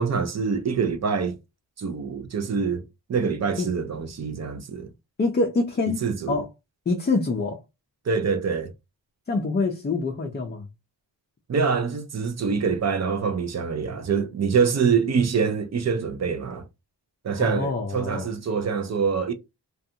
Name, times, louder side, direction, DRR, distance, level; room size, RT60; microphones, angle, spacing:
voice 1, 0.0-1.4 1.8-4.9 6.0-6.4 8.1-8.7 11.5-16.6 17.2-19.3, right 5 dB, 40° right, 0.5 m, -25 dB
voice 2, 5.2-6.5 6.9-7.6 9.3-10.7 17.4-18.3, left 3 dB, 25° left, 0.4 m, -25 dB
2.5 x 2.3 x 2.7 m
wide cardioid pair, 125°, 43 cm